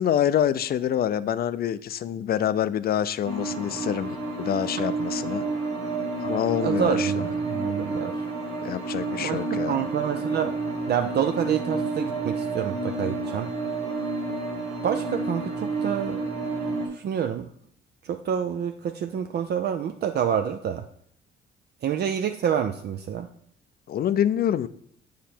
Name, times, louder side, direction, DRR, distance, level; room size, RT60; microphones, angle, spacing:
voice 1, 0.0-5.4 6.2-7.3 8.6-9.8 23.9-24.7, left 10 dB, 50° left, 15 dB, 0.4 m, -26 dB
sound 1, 3.2-16.9, right 3 dB, 90° right, 2.1 m, -30 dB
voice 2, 6.6-8.2 9.2-9.4 9.7-10.5 10.9-13.5 14.8-16.2 16.9-17.5 18.0-20.8 21.8-23.3, right 8 dB, 55° right, 7 dB, 0.5 m, -27 dB
7.2 x 5.1 x 4.4 m, 0.68 s
cardioid pair, 90°, 20 cm